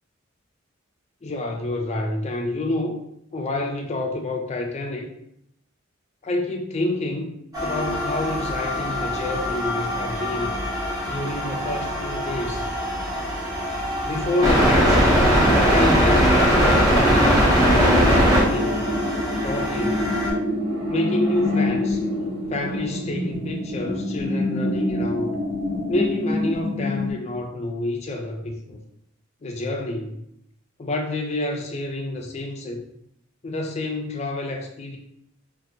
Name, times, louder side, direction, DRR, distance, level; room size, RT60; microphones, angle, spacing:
voice 1, 1.2-3.0 3.3-5.1 6.2-7.3 7.6-10.5 11.1-12.7 14.0-15.3 15.7-18.9 19.4-20.1 20.9-22.0 22.5-25.4 25.9-28.8 29.4-30.2 30.8-32.8 33.4-35.0, left 2 dB, 35° left, 2 dB, 0.4 m, -28 dB
sound 1, 7.5-20.3, equal, 20° right, 0.6 m, -21 dB
sound 2, 17.0-27.1, left 1 dB, 75° right, 1.5 m, -26 dB
2.6 x 2.5 x 2.6 m, 0.76 s
head